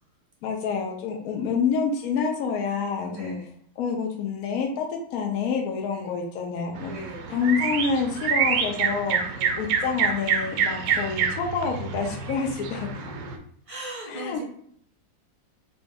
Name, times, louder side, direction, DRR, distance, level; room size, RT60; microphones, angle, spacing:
voice 1, 0.4-3.4 3.8-6.9 7.3-9.2 9.6-12.9 14.1-14.4, left 5 dB, 70° left, 2 dB, 0.8 m, -27 dB
voice 2, 3.0-3.5 5.9-6.1 6.8-7.3 9.3-9.6 10.8-11.0 13.7-14.4, right 1 dB, 55° right, -3 dB, 0.3 m, -39 dB
sound 1, 6.8-13.4, right 6 dB, 80° right, 1.2 m, -27 dB
4.1 x 2.3 x 3.4 m, 0.63 s
omnidirectional pair, 1.9 m